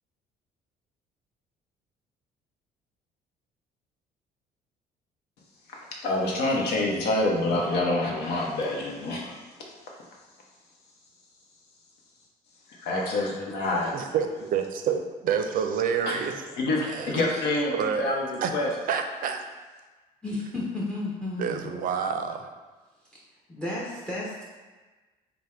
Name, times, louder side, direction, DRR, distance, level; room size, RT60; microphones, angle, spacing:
voice 1, 5.7-9.4 12.7-13.9 16.1-16.2 16.6-18.7, left 2 dB, 75° left, -2 dB, 0.8 m, -27 dB
voice 2, 13.8-16.3 16.9-17.1 17.7-18.1 18.4-18.5 18.9-19.4 21.4-22.5, right 7 dB, 55° right, 6 dB, 0.4 m, -28 dB
voice 3, 20.2-21.8 23.5-24.4, left 2 dB, 5° left, -4 dB, 0.6 m, -33 dB
3.4 x 2.1 x 4.2 m, 1.3 s
cardioid pair, 110°, 17 cm